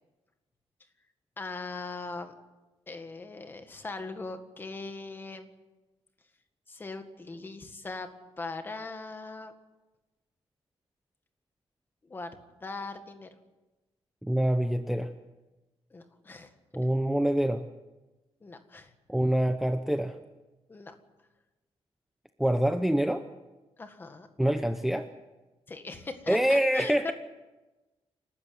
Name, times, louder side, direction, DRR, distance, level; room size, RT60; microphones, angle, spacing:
voice 1, 1.4-2.3 2.9-5.5 6.7-8.1 8.4-9.5 12.0-13.3 15.9-16.5 18.4-18.9 20.7-21.0 23.8-24.3 25.7-27.1, left 3 dB, 20° left, 7 dB, 1.8 m, -40 dB
voice 2, 14.2-15.1 16.7-17.6 19.1-20.2 22.4-23.2 24.4-25.1 26.3-27.1, right 1 dB, ahead, 8 dB, 0.7 m, -25 dB
28.5 x 13.0 x 9.4 m, 1.1 s
wide cardioid pair, 175°, 10 cm